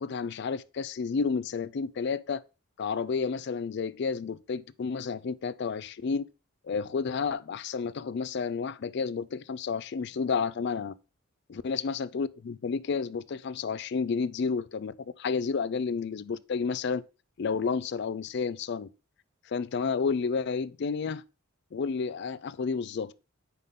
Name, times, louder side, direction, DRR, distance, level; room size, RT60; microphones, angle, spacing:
voice 1, 0.0-2.4 2.8-6.3 6.7-10.9 11.5-17.0 17.4-18.9 19.5-21.2 21.7-23.1, left 5 dB, 55° left, 0.4 m, -31 dB
9.4 x 3.7 x 3.7 m
head